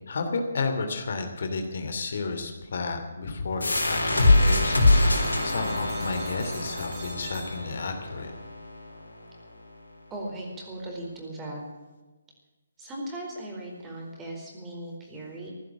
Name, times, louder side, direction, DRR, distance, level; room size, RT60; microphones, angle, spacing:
voice 1, 0.1-8.3, left 4 dB, 60° left, 6 dB, 2.7 m, -32 dB
sound 1, 3.6-9.0, left 2 dB, 85° left, 4.1 m, -24 dB
sound 2, 3.8-8.1, right 3 dB, 35° right, 5.4 m, -44 dB
voice 2, 10.1-11.6 12.8-15.5, right 1 dB, 15° right, -1 dB, 4.4 m, -38 dB
15.5 x 11.5 x 7.4 m, 1.2 s
figure-of-eight pair, 145°, 0 cm